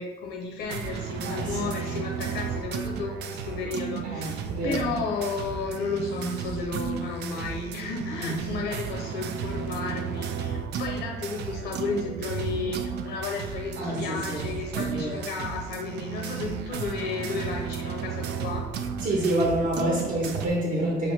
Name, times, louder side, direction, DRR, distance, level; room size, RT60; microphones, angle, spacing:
voice 1, 0.0-18.6, left 4 dB, 90° left, 0 dB, 0.6 m, -33 dB
sound 1, 0.6-20.5, right 7 dB, 75° right, 0.4 m, -33 dB
voice 2, 1.2-1.9 4.0-4.8 8.1-8.3 13.8-14.4 14.7-15.2 19.0-21.1, right 1 dB, 55° right, -3 dB, 0.9 m, -28 dB
5.8 x 2.9 x 3.1 m, 1.2 s
cardioid pair, 175°, 17 cm